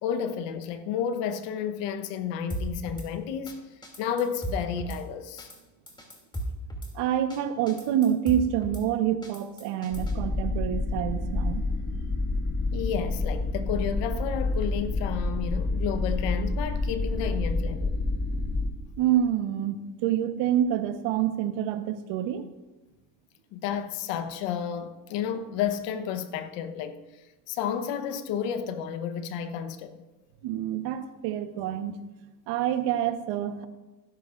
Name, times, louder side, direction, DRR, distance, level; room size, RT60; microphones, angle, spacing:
voice 1, 0.0-3.6 4.0-5.5 12.7-17.9 23.5-29.9, left 8 dB, 70° left, 1.3 m, -31 dB
Drum kit / Snare drum, 2.5-3.1 3.5-3.6 3.8-5.0 5.4-5.6 5.9-6.9 7.3-7.4 7.7-8.8 9.2-10.1, right 1 dB, 10° left, 2.9 m, -35 dB
voice 2, 6.9-11.6 19.0-22.5 30.4-32.0 32.5-33.7, right 10 dB, 70° right, 1.3 m, -27 dB
sound 1, 9.9-18.7, left 2 dB, 30° left, 4.2 m, -28 dB
18.5 x 11.0 x 2.6 m
supercardioid pair, 100°, 45 cm